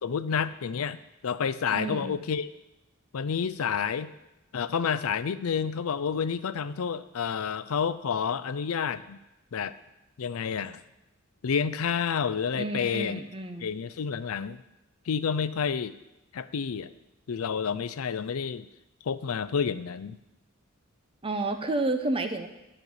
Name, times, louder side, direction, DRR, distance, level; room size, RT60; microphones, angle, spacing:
voice 1, 0.0-2.5 3.1-4.1 4.5-9.2 9.5-9.7 10.2-10.8 11.4-13.2 13.6-14.6 15.1-16.0 16.3-16.9 17.3-18.7 19.1-20.2, left 6 dB, 85° left, 14 dB, 0.5 m, -29 dB
voice 2, 1.7-2.2 12.5-13.7 21.2-22.5, right 2 dB, 25° right, 7 dB, 0.8 m, -30 dB
10.5 x 4.4 x 8.0 m, 0.97 s
head